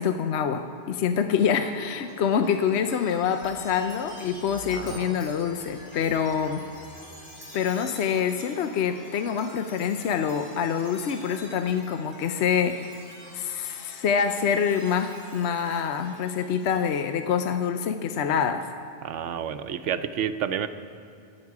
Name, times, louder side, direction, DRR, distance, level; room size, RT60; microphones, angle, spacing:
voice 1, 0.0-6.6 7.5-12.8 13.3-18.7, left 7 dB, 70° left, 7 dB, 0.9 m, -26 dB
Chime, 1.4-17.2, equal, 45° left, 3.1 m, -47 dB
voice 2, 4.7-5.1 19.0-20.7, right 8 dB, 90° right, 10 dB, 1.0 m, -30 dB
24.0 x 8.8 x 4.7 m, 2.8 s
omnidirectional pair, 1.2 m